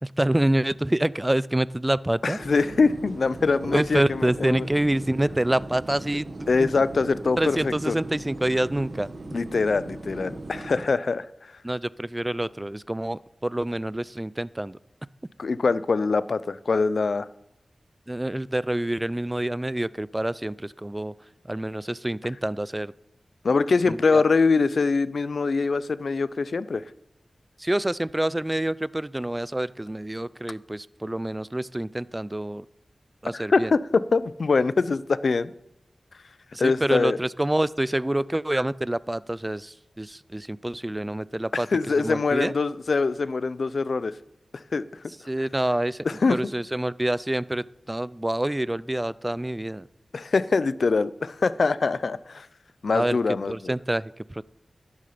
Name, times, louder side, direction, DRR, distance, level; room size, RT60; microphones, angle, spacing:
voice 1, 0.0-2.4 3.6-6.3 6.6-6.7 7.4-9.1 11.6-14.8 18.1-21.1 21.5-22.9 23.9-24.2 27.6-32.6 33.2-33.7 36.5-41.7 42.0-42.5 45.3-49.9 52.9-53.2 53.5-54.4, right 1 dB, 15° right, 20 dB, 0.3 m, -27 dB
voice 2, 2.2-4.7 6.5-8.0 9.3-11.3 15.4-17.3 23.4-26.8 33.3-35.5 36.6-37.2 41.5-44.1 44.7-44.8 46.0-46.4 50.1-52.5 52.8-53.8, left 4 dB, 70° left, 17 dB, 0.5 m, -23 dB
sound 1, 2.4-10.9, right 2 dB, 55° right, 1.5 m, -39 dB
11.5 x 11.0 x 5.1 m, 0.83 s
wide cardioid pair, 75°, 0 cm